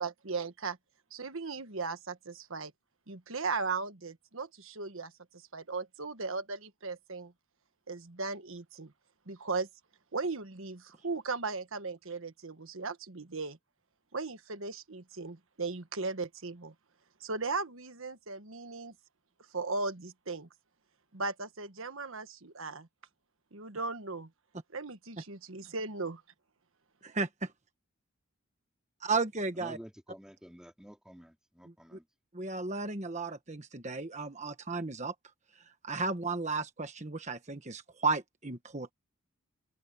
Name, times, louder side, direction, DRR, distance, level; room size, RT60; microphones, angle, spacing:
voice 1, 0.0-0.8 1.1-2.7 3.1-7.3 7.9-8.9 9.3-9.7 10.1-13.6 14.1-16.7 17.2-18.9 19.5-20.5 21.1-22.9 23.5-24.3 24.7-26.2, right 4 dB, 70° right, 1.4 m, -37 dB
voice 2, 29.0-29.8 32.3-35.1 35.8-38.9, right 4 dB, 35° right, 1.3 m, -34 dB
voice 3, 29.6-32.0, equal, 5° right, 3.1 m, -50 dB
open air
head